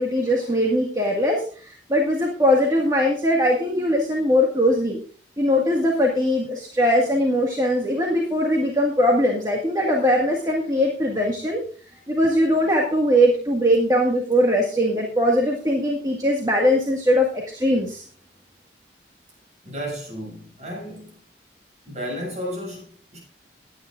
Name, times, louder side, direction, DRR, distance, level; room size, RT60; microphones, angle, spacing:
voice 1, 0.0-5.0 5.4-11.6 12.1-18.0, equal, 20° right, 1.8 m, -21 dB
voice 2, 19.6-21.2 21.9-23.2, equal, 40° right, 7.2 m, -33 dB
19.5 x 9.7 x 2.5 m
head